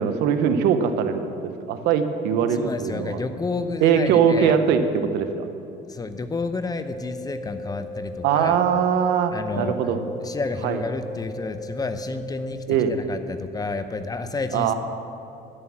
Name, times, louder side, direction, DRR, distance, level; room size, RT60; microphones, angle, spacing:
voice 1, 0.0-3.2 3.8-5.5 8.2-10.0 10.6-10.8 12.7-12.9 14.5-14.7, right 7 dB, 90° right, 8 dB, 1.0 m, -21 dB
voice 2, 2.5-4.6 5.9-8.6 9.3-9.8 10.2-12.6 12.9-14.7, left 3 dB, 20° left, 10 dB, 0.7 m, -30 dB
sound 1, 6.6-12.6, left 2 dB, 20° right, 2.5 m, -37 dB
11.0 x 9.7 x 7.3 m, 2.7 s
cardioid pair, 110°, 17 cm